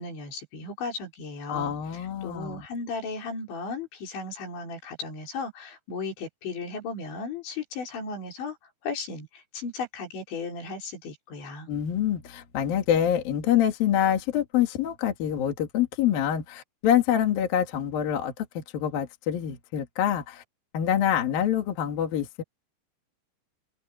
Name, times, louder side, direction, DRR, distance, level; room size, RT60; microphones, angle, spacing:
voice 1, 0.0-8.6 8.8-11.7, left 4 dB, 75° left, 7.0 m, -36 dB
voice 2, 1.5-2.7 11.7-20.4 20.7-22.4, left 10 dB, 55° left, 3.5 m, -26 dB
omnidirectional pair, 5.3 m